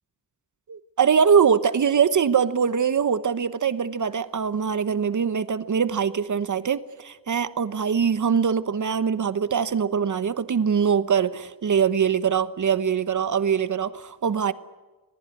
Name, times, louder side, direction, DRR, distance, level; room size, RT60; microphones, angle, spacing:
voice 1, 0.7-14.5, right 7 dB, 60° right, 1.0 m, -23 dB
26.5 x 19.5 x 9.8 m
wide cardioid pair, 175°, 35 cm